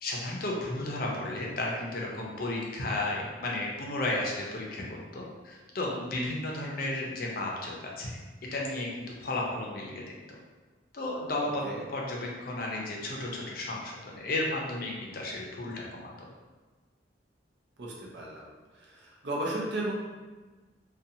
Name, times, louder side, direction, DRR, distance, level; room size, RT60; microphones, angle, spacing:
voice 1, 0.0-8.2 8.5-10.0 10.9-16.3, left 2 dB, 55° left, -2 dB, 0.5 m, -33 dB
voice 2, 17.8-18.4 18.7-19.9, right 1 dB, 70° right, -3 dB, 0.6 m, -34 dB
2.5 x 2.2 x 2.6 m, 1.3 s
head